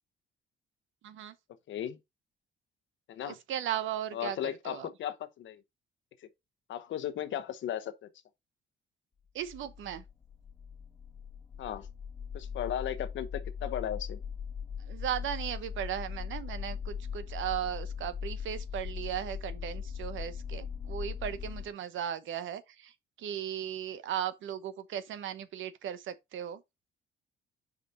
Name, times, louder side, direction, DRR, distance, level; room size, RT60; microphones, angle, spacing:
voice 1, 1.0-1.3 3.2-4.9 9.3-10.0 14.8-26.6, right 10 dB, 75° right, 1.0 m, -37 dB
voice 2, 1.7-2.0 3.1-3.4 4.1-5.6 6.7-7.9 11.6-11.9 12.3-14.2, left 10 dB, 75° left, 1.0 m, -36 dB
sound 1, 9.4-21.7, left 7 dB, 25° left, 2.0 m, -40 dB
5.0 x 4.4 x 5.5 m
cardioid pair, 90°, 20 cm